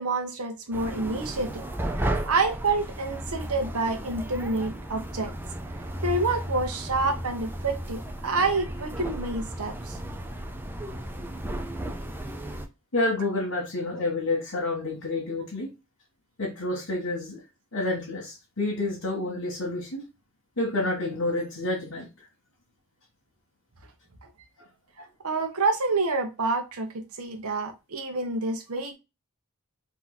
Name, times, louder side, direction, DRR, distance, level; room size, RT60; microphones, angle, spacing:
voice 1, 0.0-1.7 2.0-5.3 6.0-10.0 25.2-28.9, right 3 dB, 90° right, 0.9 m, -28 dB
sound 1, 0.7-12.7, right 1 dB, 10° right, 0.5 m, -34 dB
voice 2, 12.9-15.7 16.4-17.4 17.7-20.0 20.6-22.1, left 2 dB, 70° left, 1.8 m, -29 dB
3.8 x 2.8 x 4.1 m
head